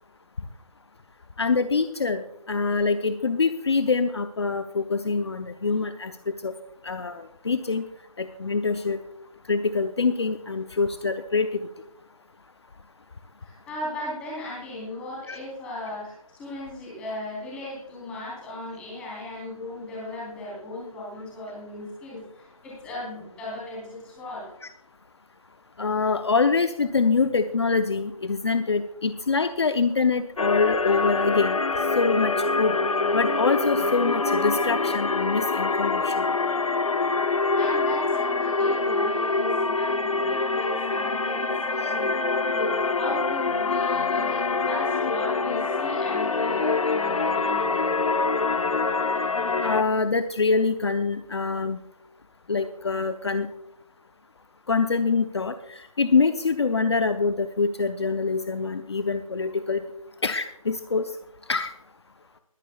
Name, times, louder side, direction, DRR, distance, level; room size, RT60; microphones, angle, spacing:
voice 1, 1.4-6.5 6.8-7.8 8.2-9.0 9.5-11.7 15.3-15.4 25.8-31.6 32.0-32.8 33.1-36.3 41.8-41.9 49.6-51.8 52.5-53.5 54.7-59.8 60.2-61.1 61.5-61.7, left 4 dB, 50° left, 9 dB, 0.7 m, -25 dB
voice 2, 13.4-24.5 37.6-42.1 42.5-47.9, left 1 dB, 5° left, -6 dB, 3.6 m, -36 dB
sound 1, 30.4-49.8, left 3 dB, 70° left, 1.0 m, -25 dB
21.5 x 11.0 x 2.3 m, 0.81 s
figure-of-eight pair, 175°, 18 cm